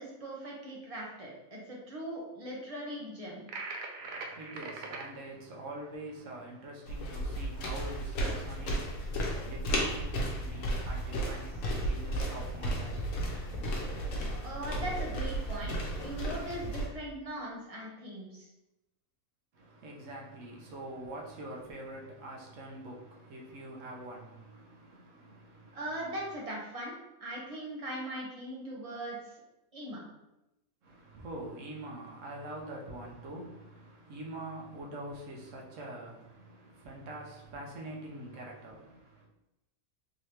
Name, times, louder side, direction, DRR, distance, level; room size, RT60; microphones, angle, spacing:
voice 1, 0.0-3.5 14.4-18.5 25.7-26.9 27.2-29.2 29.7-30.1, right 1 dB, 30° right, 0.9 m, -40 dB
sound 1, 3.5-5.1, right 3 dB, 85° right, 0.4 m, -40 dB
voice 2, 4.0-13.8 19.5-26.1 30.8-39.3, right 1 dB, 70° right, 1.2 m, -45 dB
sound 2, 6.9-16.9, right 1 dB, 75° left, 1.1 m, -34 dB
3.7 x 3.1 x 2.9 m
omnidirectional pair, 1.4 m